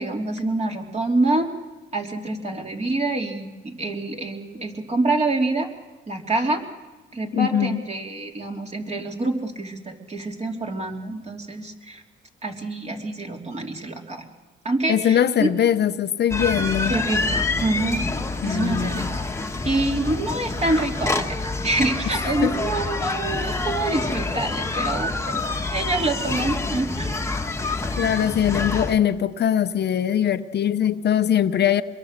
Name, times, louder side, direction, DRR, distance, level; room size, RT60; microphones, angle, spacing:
voice 1, 0.0-1.5 1.9-5.7 6.1-6.6 7.1-12.0 12.4-14.2 14.6-15.5 16.9-18.1 18.4-19.1 19.6-21.3 21.6-25.4 25.7-27.1, right 2 dB, 35° right, 2 dB, 3.0 m, -26 dB
voice 2, 7.3-7.8 14.9-16.9 18.4-19.1 22.4-22.5 28.0-31.8, left 10 dB, 55° left, 11 dB, 0.8 m, -21 dB
sound 1, 16.3-29.0, left 3 dB, 15° left, 1.3 m, -27 dB
25.5 x 22.5 x 6.6 m, 1.2 s
cardioid pair, 90°, 20 cm